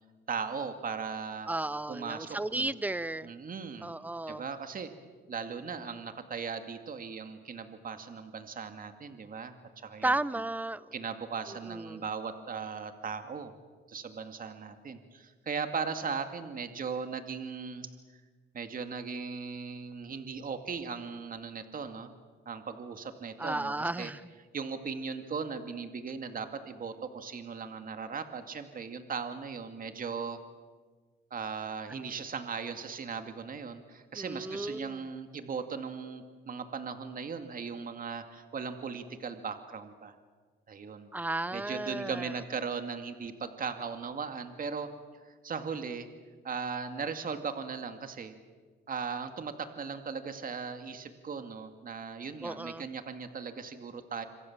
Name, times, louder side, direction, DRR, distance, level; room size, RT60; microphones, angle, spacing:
voice 1, 0.3-1.5 1.9-2.7 3.2-3.9 4.3-4.9 5.3-10.1 10.9-13.5 13.9-17.9 18.5-22.1 22.5-24.1 24.5-30.4 31.3-40.2 40.7-41.1 41.5-44.9 45.2-46.1 46.4-48.3 48.9-54.3, right 5 dB, 45° right, 7 dB, 2.3 m, -38 dB
voice 2, 1.5-3.3 3.8-4.4 10.0-10.9 11.5-12.0 23.4-24.2 34.1-35.0 41.1-42.3 52.4-52.8, right 2 dB, 10° right, 17 dB, 0.8 m, -34 dB
27.0 x 25.0 x 7.4 m, 1.5 s
cardioid pair, 90°, 20 cm